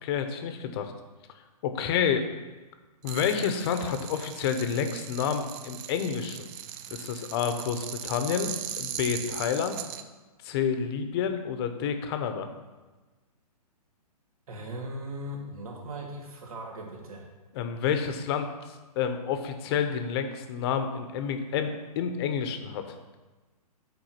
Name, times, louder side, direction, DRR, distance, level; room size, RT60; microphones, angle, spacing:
voice 1, 0.0-0.9 1.6-2.3 3.0-6.5 6.9-8.5 8.8-9.8 10.4-12.5 17.5-18.5 18.9-23.0, left 7 dB, 40° left, 7 dB, 1.0 m, -29 dB
sound 1, 3.0-10.0, right 10 dB, 25° right, 0.4 m, -39 dB
voice 2, 14.5-17.3, right 1 dB, 65° right, 1 dB, 2.3 m, -39 dB
9.3 x 4.8 x 5.9 m, 1.2 s
hypercardioid pair, 135°, 20 cm